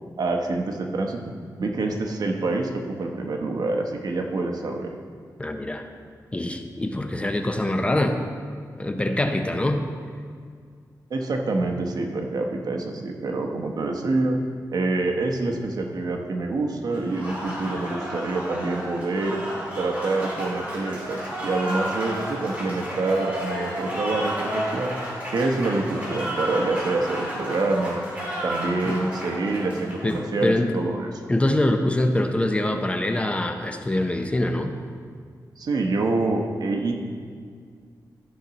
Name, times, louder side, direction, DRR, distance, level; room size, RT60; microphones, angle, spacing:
voice 1, 0.2-4.9 11.1-14.4 14.7-19.4 19.8-25.0 25.3-28.0 28.4-31.1 35.6-36.9, right 3 dB, 65° right, 2 dB, 1.0 m, -26 dB
voice 2, 5.4-5.9 6.3-8.2 8.8-9.9 28.8-29.0 30.0-30.8 31.3-34.8, left 1 dB, 15° left, 5 dB, 0.6 m, -24 dB
Applause, 16.9-30.6, equal, 20° right, 2.8 m, -32 dB
14.0 x 5.8 x 4.0 m, 2.1 s
wide cardioid pair, 110°, 7 cm